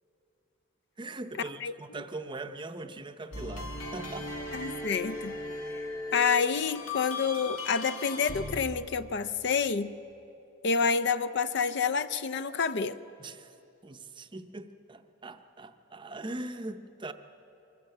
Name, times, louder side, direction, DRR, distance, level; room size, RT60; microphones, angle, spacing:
voice 1, 1.0-4.3 13.2-13.5 13.8-17.1, right 2 dB, 25° right, 8 dB, 0.6 m, -41 dB
sound 1, 3.3-8.6, left 2 dB, 90° left, 2.3 m, -37 dB
voice 2, 4.5-5.3 5.7-5.9 6.1-9.9 10.6-13.0, left 5 dB, 55° left, 14 dB, 0.5 m, -28 dB
24.0 x 14.5 x 7.7 m, 2.9 s
head